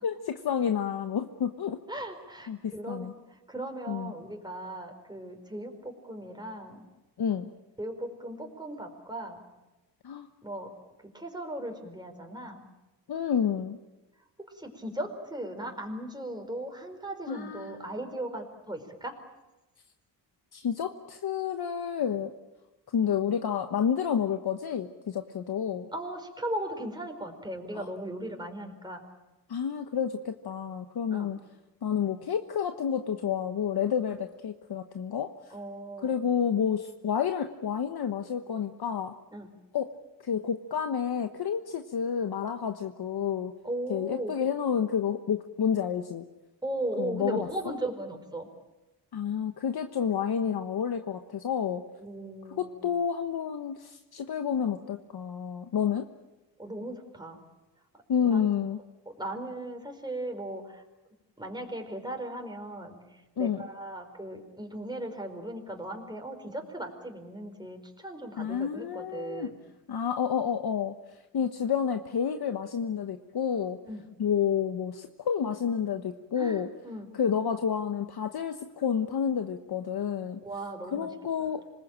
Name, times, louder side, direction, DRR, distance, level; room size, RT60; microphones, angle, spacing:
voice 1, 0.0-1.8 2.5-3.1 3.9-4.1 7.2-7.5 10.0-10.3 13.1-13.8 17.3-17.8 20.5-22.3 22.9-25.9 27.7-27.9 29.5-31.4 31.8-35.3 36.0-39.1 39.7-39.9 40.2-43.5 43.9-46.2 47.0-47.5 49.1-51.8 52.6-56.1 58.1-58.8 63.4-63.6 68.4-69.5 69.9-70.9 71.3-73.8 74.2-76.7 77.1-80.4 80.9-81.6, left 7 dB, 60° left, 7 dB, 1.2 m, -29 dB
voice 2, 1.9-6.8 7.8-9.4 10.4-10.7 11.0-12.7 14.5-19.2 25.9-29.0 31.1-31.3 35.5-36.2 39.3-39.5 43.6-44.3 46.6-48.5 52.0-52.9 56.6-57.4 58.2-58.5 59.1-60.8 61.4-69.6 71.4-71.5 73.8-74.0 76.4-77.1 80.4-81.1 81.4-81.5, right 1 dB, 10° right, 4 dB, 4.5 m, -37 dB
26.5 x 20.0 x 8.9 m, 1.1 s
cardioid pair, 90°, 43 cm